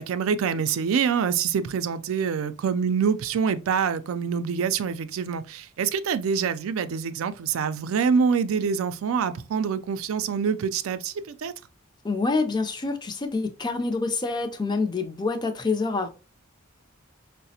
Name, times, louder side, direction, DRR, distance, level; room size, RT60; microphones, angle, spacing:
voice 1, 0.0-11.5, right 6 dB, 90° right, 0.4 m, -25 dB
voice 2, 12.0-16.1, left 3 dB, 20° left, 0.4 m, -26 dB
4.7 x 2.0 x 2.7 m
head